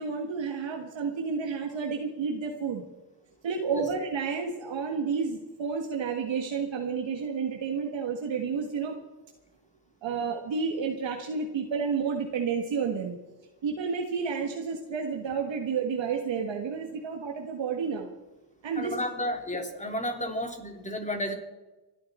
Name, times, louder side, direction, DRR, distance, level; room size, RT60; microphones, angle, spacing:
voice 1, 0.0-2.8 3.4-9.0 10.0-13.2 13.6-18.1 18.6-18.9, right 5 dB, 80° right, 1 dB, 1.7 m, -31 dB
voice 2, 18.8-21.3, left 1 dB, 15° left, 3 dB, 3.2 m, -32 dB
27.5 x 11.0 x 4.3 m, 1.1 s
cardioid pair, 90°, 44 cm